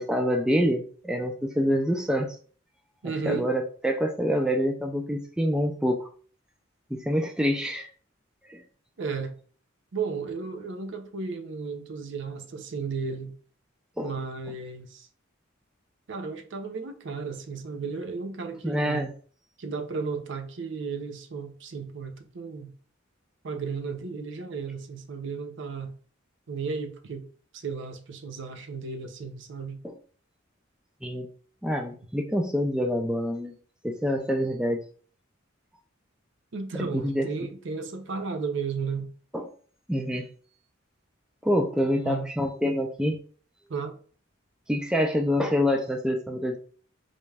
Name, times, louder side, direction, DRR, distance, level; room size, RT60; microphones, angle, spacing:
voice 1, 0.0-2.4 3.2-6.1 6.9-7.9 8.5-8.6 14.0-14.1 18.6-19.1 29.8-29.9 31.0-31.3 31.6-33.5 33.8-34.8 36.9-37.3 39.3-39.5 39.9-40.3 41.4-43.2 44.7-46.6, equal, 5° right, 0.3 m, -26 dB
voice 2, 3.0-3.5 9.0-9.3 9.9-13.3 14.0-15.1 16.1-19.1 19.6-22.7 23.4-25.9 26.5-27.2 27.5-29.8 36.5-39.1 41.9-42.3 42.6-42.8 43.7-44.0, right 5 dB, 65° right, 0.5 m, -34 dB
4.0 x 2.3 x 3.2 m
head